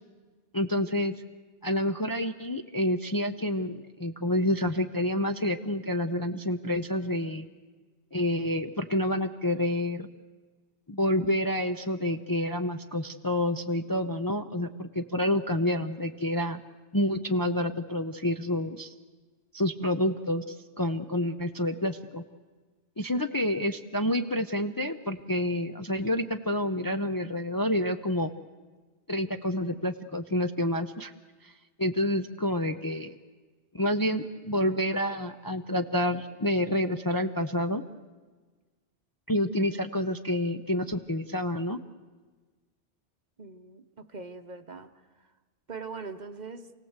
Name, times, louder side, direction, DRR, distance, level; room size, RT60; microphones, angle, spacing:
voice 1, 0.5-1.1 1.6-7.5 8.1-10.1 10.9-16.6 16.9-18.9 19.5-22.2 23.0-28.3 29.1-31.1 31.4-31.5 31.8-33.2 33.7-37.8 39.3-41.8, left 1 dB, 25° left, 6 dB, 0.6 m, -28 dB
voice 2, 43.4-44.9 45.7-46.7, right 4 dB, 40° right, 8 dB, 1.0 m, -41 dB
28.5 x 17.5 x 8.0 m, 1.4 s
omnidirectional pair, 1.2 m